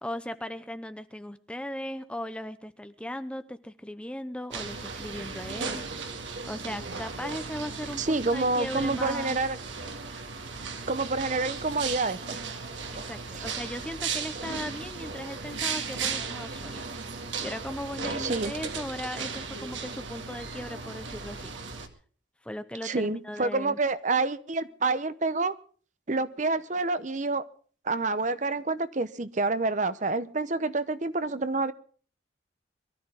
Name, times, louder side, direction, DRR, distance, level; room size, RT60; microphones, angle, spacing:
voice 1, 0.0-5.8 6.5-9.4 12.9-16.9 17.4-21.5 22.4-23.8, left 1 dB, 5° left, 11 dB, 0.7 m, -38 dB
sound 1, 4.5-21.9, right 5 dB, 90° right, 2.1 m, -36 dB
voice 2, 8.0-9.6 10.9-12.4 13.3-13.5 18.2-18.5 22.8-25.5 26.1-27.4 27.8-31.7, right 3 dB, 40° right, 14 dB, 0.8 m, -28 dB
23.0 x 13.5 x 3.6 m, 0.43 s
head